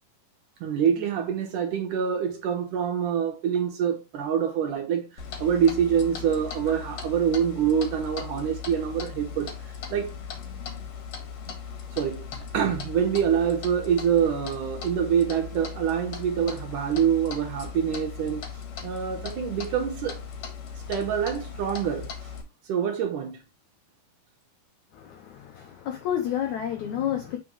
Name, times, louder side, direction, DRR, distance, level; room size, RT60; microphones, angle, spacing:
voice 1, 0.6-5.1 5.4-9.5 9.9-10.2 11.5-11.6 11.9-12.3 12.5-18.4 18.8-20.2 20.9-22.1 22.7-23.4, right 8 dB, 70° right, 2.2 m, -25 dB
Clock, 5.2-22.4, left 6 dB, 55° left, 2.1 m, -38 dB
voice 2, 24.9-27.4, left 10 dB, 80° left, 1.7 m, -30 dB
7.4 x 5.1 x 3.0 m
omnidirectional pair, 4.5 m